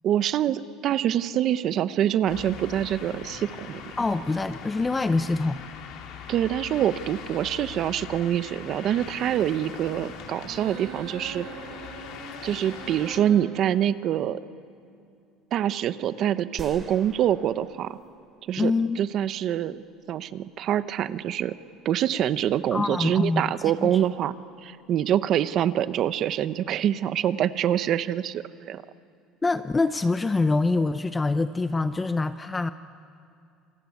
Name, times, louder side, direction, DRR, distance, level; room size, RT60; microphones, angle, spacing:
voice 1, 0.0-3.9 6.3-11.5 12.4-14.4 15.5-18.0 18.5-19.8 20.1-21.6 21.8-24.3 24.6-28.8, right 10 dB, 45° right, 14 dB, 0.8 m, -25 dB
sound 1, 2.3-13.2, left 7 dB, 60° left, 3.2 m, -41 dB
voice 2, 4.0-5.6 18.6-19.0 22.7-23.5 23.8-23.9 29.4-32.7, left 3 dB, 15° left, 11 dB, 0.6 m, -25 dB
sound 2, 10.4-13.5, right 5 dB, 70° right, 5.1 m, -41 dB
sound 3, 16.6-19.5, right 1 dB, 10° right, 3.5 m, -47 dB
27.5 x 23.0 x 9.5 m, 2.5 s
cardioid pair, 145°, 0 cm